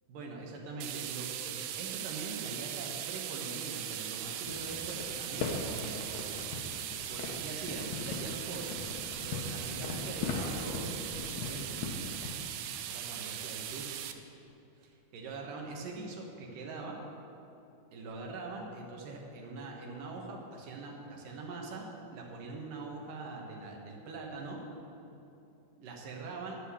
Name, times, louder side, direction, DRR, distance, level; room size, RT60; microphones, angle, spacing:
voice 1, 0.1-6.4 7.1-8.8 9.1-13.9 14.8-17.0 17.9-21.9 22.1-24.6 25.8-26.6, right 3 dB, 65° right, 0 dB, 2.6 m, -43 dB
sound 1, 0.8-14.1, right 11 dB, 80° right, 2.2 m, -39 dB
sound 2, 4.4-12.3, left 4 dB, 75° left, 1.7 m, -39 dB
11.5 x 5.5 x 8.2 m, 2.8 s
omnidirectional pair, 4.4 m